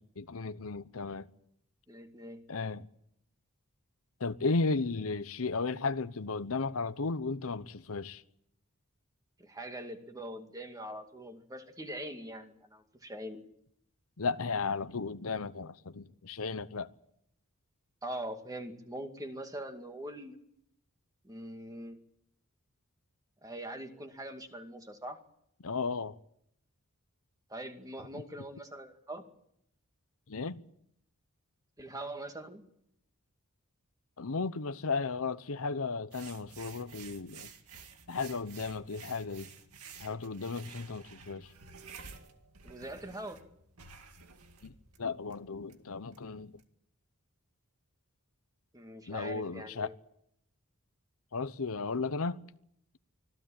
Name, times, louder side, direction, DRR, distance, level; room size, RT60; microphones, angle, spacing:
voice 1, 0.2-1.3 2.5-2.9 4.2-8.2 14.2-16.9 25.6-26.2 30.3-30.6 34.2-37.5 38.1-39.5 40.0-41.5 44.6-44.7 45.0-46.5 49.1-49.9 51.3-52.4, left 4 dB, 70° left, 0.9 m, -34 dB
voice 2, 1.9-2.4 9.4-13.4 18.0-20.4 21.2-22.0 23.4-25.2 27.5-29.2 31.8-32.7 42.6-43.4 48.7-49.9, right 1 dB, 15° right, 2.3 m, -42 dB
sound 1, 36.1-46.6, right 5 dB, 85° right, 2.1 m, -52 dB
25.5 x 15.5 x 8.9 m
head